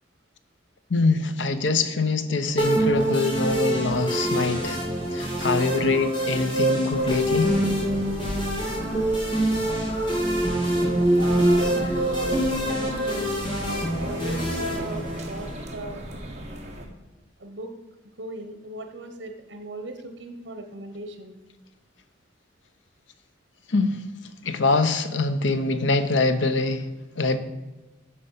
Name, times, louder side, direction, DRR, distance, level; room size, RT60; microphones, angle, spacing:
voice 1, 0.9-4.8 5.1-7.5 23.7-23.9 24.4-26.8 27.2-27.4, left 3 dB, 85° left, 0.9 m, -24 dB
sound 1, 2.6-15.6, right 1 dB, 25° left, 2.8 m, -25 dB
sound 2, 6.9-16.9, equal, 40° right, 1.6 m, -38 dB
voice 2, 11.2-11.8 12.0-16.0 17.4-17.7 18.2-21.4, right 2 dB, 80° right, 1.1 m, -37 dB
9.9 x 6.5 x 5.7 m
head